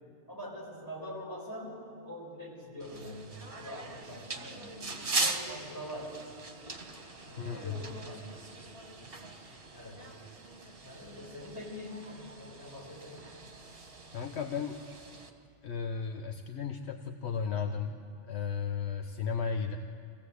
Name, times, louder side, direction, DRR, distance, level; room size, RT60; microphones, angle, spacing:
voice 1, 0.3-1.7 2.0-3.2 3.6-6.1 7.2-8.2 9.7-10.1 10.8-13.3 17.6-17.8, left 1 dB, 15° left, -4 dB, 6.1 m, -44 dB
sound 1, 2.8-15.3, right 3 dB, 55° right, 1.7 m, -40 dB
voice 2, 7.4-7.8 14.1-14.8 15.6-18.0 18.2-19.8, left 6 dB, 70° left, 5 dB, 1.1 m, -34 dB
24.0 x 16.5 x 8.2 m, 2.5 s
omnidirectional pair, 1.2 m